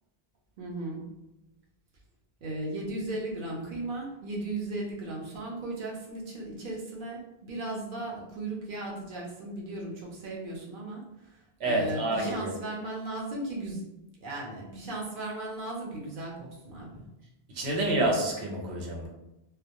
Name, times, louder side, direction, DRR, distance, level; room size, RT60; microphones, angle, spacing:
voice 1, 0.6-1.0 2.4-13.8 14.2-17.1 17.7-17.8, right 2 dB, 60° right, -2 dB, 0.7 m, -36 dB
voice 2, 11.6-12.5 17.5-19.1, right 1 dB, 90° right, -1 dB, 0.9 m, -28 dB
2.2 x 2.1 x 2.8 m, 0.92 s
omnidirectional pair, 1.1 m